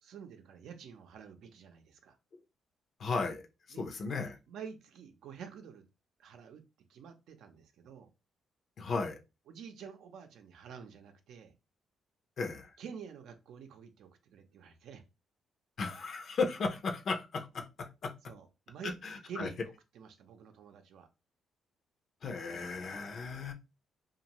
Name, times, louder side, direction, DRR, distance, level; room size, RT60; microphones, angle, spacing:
voice 1, 0.0-2.2 3.7-3.8 4.5-5.8 6.2-6.6 6.9-8.1 9.5-11.5 12.8-15.0 18.2-18.9 19.3-19.6 19.9-21.1 22.5-22.7, right 7 dB, 75° right, 0.5 m, -49 dB
voice 2, 3.0-3.4 3.8-4.4 8.8-9.2 12.4-12.7 15.8-18.1 19.0-19.5 22.2-23.5, left 4 dB, 55° left, 0.6 m, -35 dB
2.6 x 2.4 x 2.9 m
cardioid pair, 90°, 0 cm